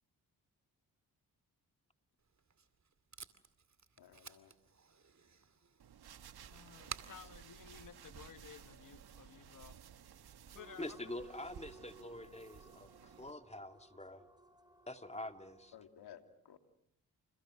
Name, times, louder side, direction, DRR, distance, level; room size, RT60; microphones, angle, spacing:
Packing tape duct tape, 2.2-8.7, right 6 dB, 45° right, 2.4 m, -54 dB
voice 1, 4.0-4.5 15.7-16.6, left 9 dB, 80° left, 2.7 m, -56 dB
sound 1, 5.8-13.3, right 8 dB, 70° right, 1.9 m, -56 dB
voice 2, 6.5-9.8 10.5-11.3, left 7 dB, 55° left, 1.5 m, -55 dB
sound 2, 10.6-15.8, right 3 dB, 10° right, 3.3 m, -60 dB
voice 3, 10.8-14.2 14.9-15.7, left 1 dB, 15° left, 2.5 m, -46 dB
30.0 x 29.5 x 6.4 m
supercardioid pair, 50°, 39 cm